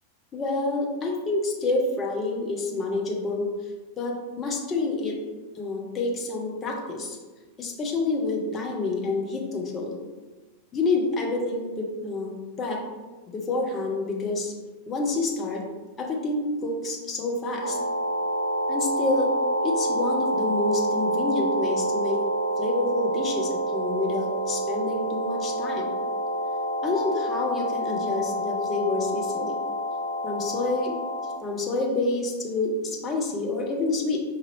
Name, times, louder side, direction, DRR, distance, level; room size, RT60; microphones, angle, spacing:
voice 1, 0.3-3.5 4.0-5.2 5.5-7.2 7.6-10.0 10.7-12.8 13.3-14.5 14.9-15.6 16.0-17.8 18.7-19.3 19.6-22.2 22.6-25.9 26.8-29.6 30.2-31.0 31.4-34.2, left 3 dB, 25° left, 0 dB, 0.8 m, -28 dB
sound 1, 17.6-31.4, right 1 dB, 75° right, 0.7 m, -27 dB
5.1 x 2.6 x 3.1 m, 1.3 s
figure-of-eight pair, 90°, 0 cm